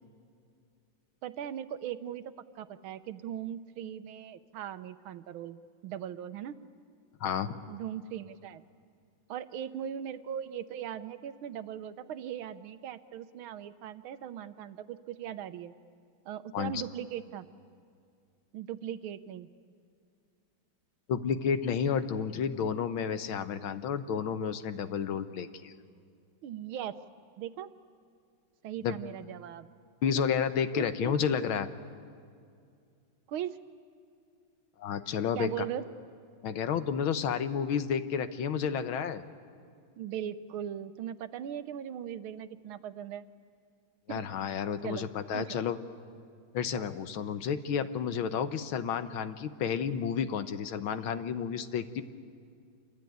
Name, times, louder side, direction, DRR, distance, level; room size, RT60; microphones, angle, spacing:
voice 1, 1.2-6.6 7.7-8.6 9.3-15.7 16.3-17.4 18.5-19.5 26.4-27.0 27.4-27.7 28.6-29.7 30.1-30.2 30.7-31.1 33.3-33.6 35.3-35.8 40.0-43.2 44.1-44.3 44.8-45.1 45.3-45.6, right 10 dB, 85° right, 12 dB, 1.7 m, -39 dB
voice 2, 7.2-7.6 16.5-16.8 21.1-25.7 28.8-29.0 30.0-31.7 34.8-35.7 36.4-39.2 44.1-45.8 46.5-52.0, left 7 dB, 80° left, 10 dB, 1.8 m, -31 dB
27.0 x 23.5 x 9.3 m, 2.3 s
omnidirectional pair, 2.2 m